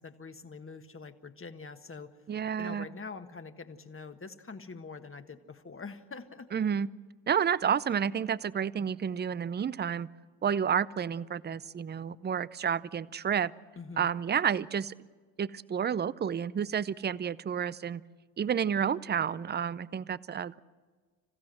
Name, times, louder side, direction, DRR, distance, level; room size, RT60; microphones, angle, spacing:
voice 1, 0.0-2.1 2.6-6.5 13.7-14.1, left 4 dB, 25° left, 8 dB, 1.6 m, -44 dB
voice 2, 2.3-2.9 6.5-6.9 7.3-10.1 10.4-13.5 14.0-14.9 15.4-18.0 18.4-20.6, right 8 dB, 20° right, 19 dB, 0.5 m, -30 dB
26.5 x 15.5 x 7.7 m, 1.5 s
hypercardioid pair, 50°, 47 cm